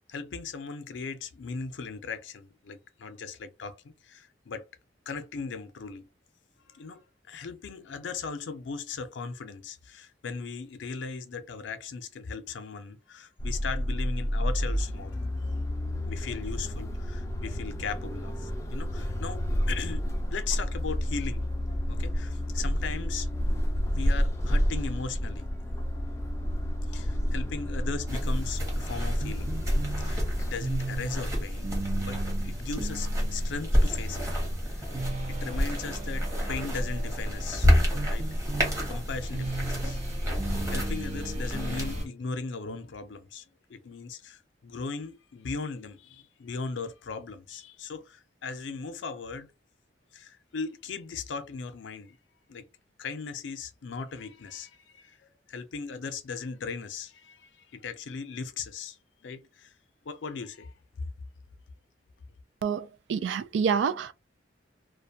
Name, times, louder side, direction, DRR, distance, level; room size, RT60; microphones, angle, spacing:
voice 1, 0.1-4.7 5.1-6.1 6.6-15.3 16.0-20.0 20.3-21.5 21.9-23.3 23.9-25.5 26.9-29.6 30.0-34.3 34.6-37.8 38.1-38.3 38.9-40.0 40.7-43.4 43.7-49.5 50.1-52.2 52.5-52.7 53.0-59.7 60.0-60.7, left 5 dB, 80° left, 0.5 m, -38 dB
sound 1, 13.4-30.5, equal, 15° left, 0.4 m, -30 dB
sound 2, 28.1-42.1, equal, 15° right, 1.0 m, -29 dB
sound 3, 29.2-42.0, right 3 dB, 40° right, 0.8 m, -38 dB
voice 2, 62.6-64.1, right 6 dB, 70° right, 0.3 m, -28 dB
2.4 x 2.2 x 2.7 m
head